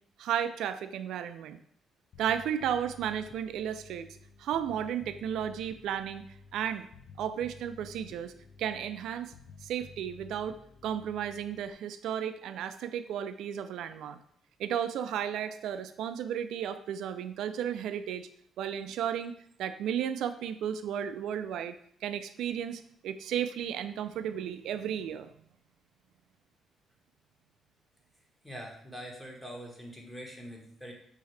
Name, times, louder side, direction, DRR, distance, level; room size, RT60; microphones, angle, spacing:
voice 1, 0.2-1.6 2.2-4.1 4.4-6.3 6.5-6.9 7.2-8.3 8.6-9.3 9.6-14.2 14.6-18.3 18.6-21.8 22.0-25.3, right 9 dB, 80° right, 11 dB, 0.3 m, -34 dB
Bass guitar, 2.1-11.7, left 4 dB, 60° left, 0.5 m, -53 dB
voice 2, 28.4-30.9, equal, 10° left, 0 dB, 1.1 m, -44 dB
5.6 x 2.7 x 3.2 m, 0.66 s
cardioid pair, 90°, 0 cm